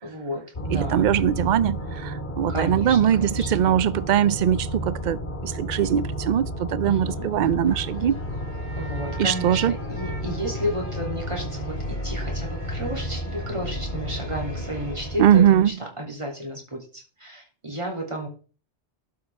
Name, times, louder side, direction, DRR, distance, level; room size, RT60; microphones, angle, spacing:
voice 1, 0.0-1.1 2.5-3.6 6.8-7.3 8.8-18.3, equal, 25° right, 3.1 m, -33 dB
sound 1, 0.5-15.7, equal, 45° left, 2.2 m, -32 dB
voice 2, 0.7-8.2 9.2-9.7 15.2-15.7, right 10 dB, 55° right, 0.5 m, -21 dB
sound 2, 7.6-15.4, right 3 dB, 85° right, 3.4 m, -46 dB
12.0 x 6.7 x 3.6 m
omnidirectional pair, 1.1 m